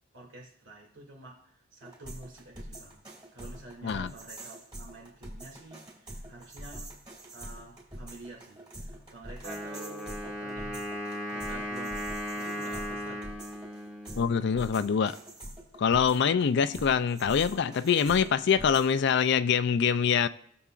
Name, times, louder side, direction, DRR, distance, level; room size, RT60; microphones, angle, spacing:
voice 1, 0.1-3.0 3.3-7.0 7.3-10.9 11.3-12.1 12.3-13.4, right 2 dB, 75° right, 2.6 m, -48 dB
sound 1, 1.8-19.0, right 1 dB, 25° right, 2.4 m, -45 dB
Wind instrument woodwind instrument, 9.4-15.1, equal, 10° right, 1.4 m, -37 dB
voice 2, 14.2-15.2 15.8-20.3, left 7 dB, 60° left, 0.4 m, -24 dB
18.0 x 6.9 x 2.5 m
head